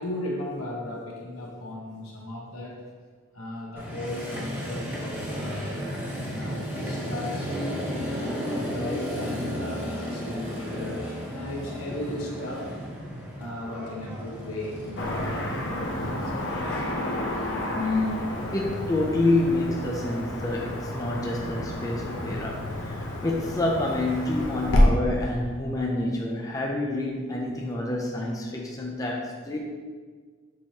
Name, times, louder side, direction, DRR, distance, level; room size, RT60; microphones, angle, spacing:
voice 1, 0.0-2.8 3.3-5.8 6.2-7.5 8.2-12.7 13.4-16.8, left 1 dB, 85° left, -2 dB, 1.0 m, -36 dB
Motorcycle, 3.8-16.8, equal, 10° right, 0.7 m, -34 dB
Car passing by / Traffic noise roadway noise, 15.0-24.8, left 1 dB, 60° left, 0.7 m, -29 dB
voice 2, 17.8-29.6, left 2 dB, 15° left, -2 dB, 0.4 m, -28 dB
6.3 x 2.9 x 2.8 m, 1.5 s
head